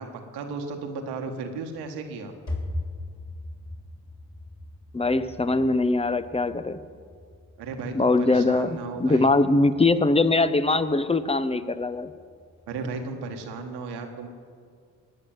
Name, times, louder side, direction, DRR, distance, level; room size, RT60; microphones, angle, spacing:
voice 1, 0.0-2.3 7.6-9.3 12.7-14.3, right 4 dB, 80° right, 4 dB, 1.7 m, -35 dB
sound 1, 1.6-12.9, left 1 dB, 45° left, 3.9 m, -41 dB
voice 2, 4.9-6.8 7.9-12.1, left 2 dB, 15° left, 13 dB, 0.9 m, -22 dB
19.0 x 6.6 x 9.1 m, 2.1 s
hypercardioid pair, 50°, 39 cm